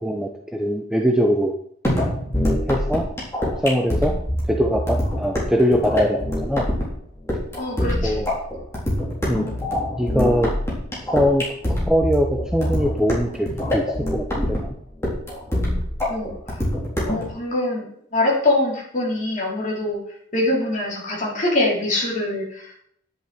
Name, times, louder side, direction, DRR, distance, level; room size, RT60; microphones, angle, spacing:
voice 1, 0.0-1.5 2.7-3.1 3.6-4.1 4.5-6.7 7.8-8.3 9.2-9.5 10.0-10.5 11.0-13.9 14.1-14.7, equal, 5° right, 1 dB, 0.8 m, -22 dB
sound 1, 1.8-17.3, left 1 dB, 15° left, 3.9 m, -24 dB
voice 2, 7.6-8.3 16.1-16.6 17.1-20.0 20.3-22.8, left 2 dB, 35° left, -4 dB, 4.0 m, -24 dB
10.5 x 10.5 x 4.4 m, 0.68 s
head